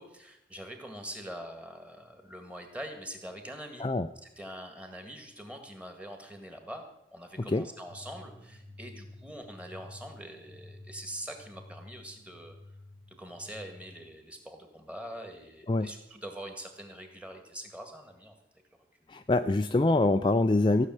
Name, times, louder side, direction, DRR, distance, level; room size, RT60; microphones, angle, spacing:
voice 1, 0.0-3.9 4.2-6.8 7.1-12.6 13.1-18.3, equal, 5° right, 5 dB, 1.9 m, -44 dB
sound 1, 7.9-14.0, left 1 dB, 40° right, 2.0 m, -51 dB
voice 2, 19.1-20.9, left 2 dB, 25° left, 8 dB, 0.4 m, -25 dB
15.0 x 6.6 x 9.2 m, 0.87 s
head